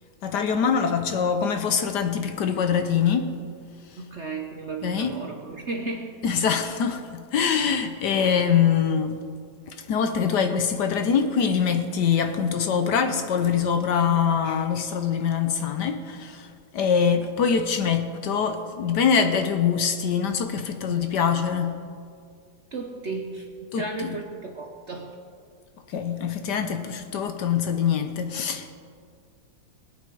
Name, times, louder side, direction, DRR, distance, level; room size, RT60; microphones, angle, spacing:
voice 1, 0.2-3.3 4.8-5.2 6.2-9.2 9.9-16.5 16.7-21.8 23.7-24.1 25.9-28.7, left 7 dB, 65° left, 1.3 m, -24 dB
voice 2, 4.0-6.2 14.1-14.6 20.8-20.9 22.7-25.2, right 3 dB, 50° right, 0.9 m, -35 dB
21.0 x 8.5 x 4.6 m
omnidirectional pair, 2.1 m